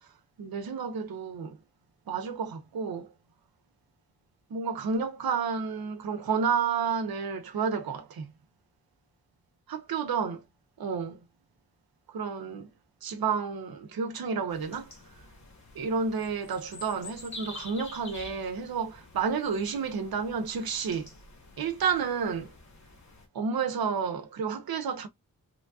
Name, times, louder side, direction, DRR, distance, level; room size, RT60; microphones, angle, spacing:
voice 1, 0.4-1.6 2.1-3.1 4.5-8.3 9.7-10.4 10.8-11.2 12.1-12.7 13.0-14.9 15.8-21.1 21.6-22.5 23.3-25.1, right 6 dB, 85° right, 0.8 m, -30 dB
sound 1, 14.5-23.3, left 2 dB, 50° left, 1.0 m, -48 dB
3.2 x 2.7 x 2.2 m
wide cardioid pair, 160°, 35 cm